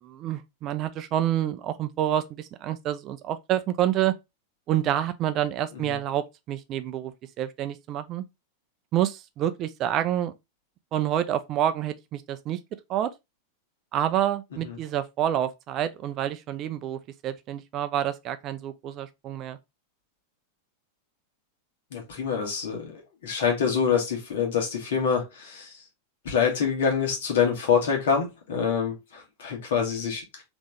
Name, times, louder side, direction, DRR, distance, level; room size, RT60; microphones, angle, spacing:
voice 1, 0.0-4.2 4.7-8.2 8.9-10.3 10.9-12.6 12.9-13.1 13.9-19.6, right 11 dB, 35° right, 0.5 m, -28 dB
voice 2, 21.9-25.8 26.2-30.4, left 6 dB, 60° left, 1.5 m, -26 dB
3.6 x 3.0 x 3.4 m
figure-of-eight pair, 90°, 0 cm